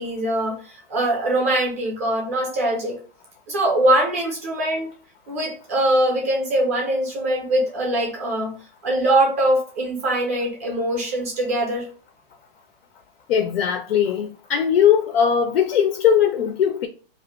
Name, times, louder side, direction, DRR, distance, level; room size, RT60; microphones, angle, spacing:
voice 1, 0.0-2.9 3.5-4.9 5.3-8.6 8.8-11.9, right 1 dB, 15° right, 0.4 m, -22 dB
voice 2, 13.3-16.9, left 8 dB, 80° left, 0.5 m, -19 dB
2.5 x 2.4 x 3.4 m
hypercardioid pair, 175°, 29 cm